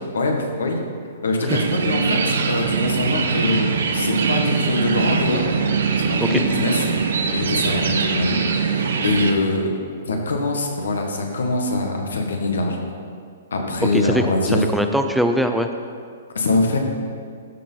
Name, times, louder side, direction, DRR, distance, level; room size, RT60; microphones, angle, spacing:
voice 1, 0.1-0.8 1.2-5.4 5.9-6.8 7.3-9.7 10.1-12.8 13.5-14.6 16.3-16.8, left 2 dB, 85° left, 2 dB, 1.7 m, -23 dB
sound 1, 1.5-9.3, right 5 dB, 70° right, 1.0 m, -22 dB
voice 2, 13.9-15.7, equal, ahead, 6 dB, 0.4 m, -22 dB
13.5 x 4.5 x 5.7 m, 2.2 s
hypercardioid pair, 140°, 0 cm